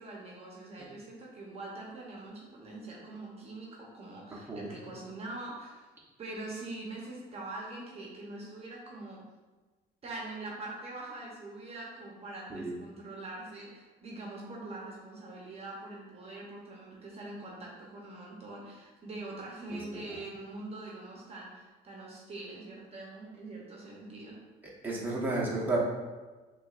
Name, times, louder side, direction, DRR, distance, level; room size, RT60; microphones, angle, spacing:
voice 1, 0.0-5.9 6.2-9.2 10.0-24.4, right 2 dB, 35° right, -3 dB, 0.8 m, -43 dB
voice 2, 24.8-25.8, right 2 dB, 10° right, -5 dB, 0.9 m, -32 dB
6.1 x 2.4 x 2.4 m, 1.3 s
cardioid pair, 110°, 17 cm